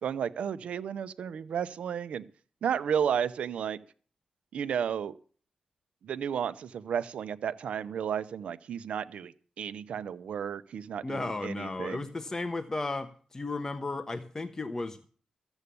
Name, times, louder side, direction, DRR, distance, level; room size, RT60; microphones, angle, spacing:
voice 1, 0.0-2.3 2.6-3.8 4.5-5.1 6.0-12.0, right 8 dB, 85° right, 14 dB, 0.8 m, -33 dB
voice 2, 11.0-15.1, left 3 dB, 25° left, 8 dB, 1.1 m, -34 dB
14.0 x 8.2 x 6.8 m, 0.43 s
cardioid pair, 85°, 2 cm